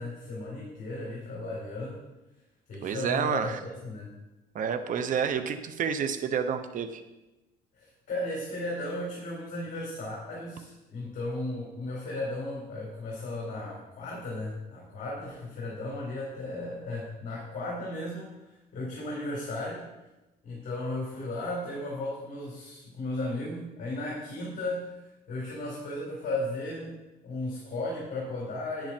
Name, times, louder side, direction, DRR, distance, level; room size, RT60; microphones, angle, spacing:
voice 1, 0.0-2.0 2.7-4.1 7.7-18.3 18.7-19.8 20.4-27.0 27.2-28.9, left 2 dB, 50° left, -5 dB, 4.5 m, -35 dB
voice 2, 2.8-3.6 4.5-7.0, right 7 dB, 50° right, 8 dB, 1.0 m, -29 dB
10.5 x 10.5 x 4.5 m, 1.0 s
cardioid pair, 110°, 17 cm